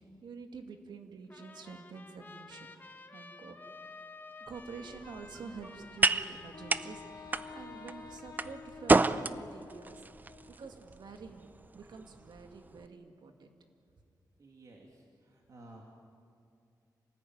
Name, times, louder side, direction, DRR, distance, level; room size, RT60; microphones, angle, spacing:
voice 1, 0.2-2.7 3.1-3.5 4.5-13.5, right 4 dB, 80° right, 5 dB, 2.3 m, -48 dB
Trumpet, 1.3-9.0, left 3 dB, 25° left, 1.4 m, -52 dB
sound 1, 4.5-12.9, right 3 dB, 25° right, 0.6 m, -33 dB
Wind instrument woodwind instrument, 6.5-10.6, left 5 dB, 65° left, 2.3 m, -50 dB
voice 2, 14.4-15.8, right 2 dB, 50° right, 0 dB, 2.7 m, -54 dB
27.5 x 19.5 x 9.5 m, 2.4 s
wide cardioid pair, 145°, 7 cm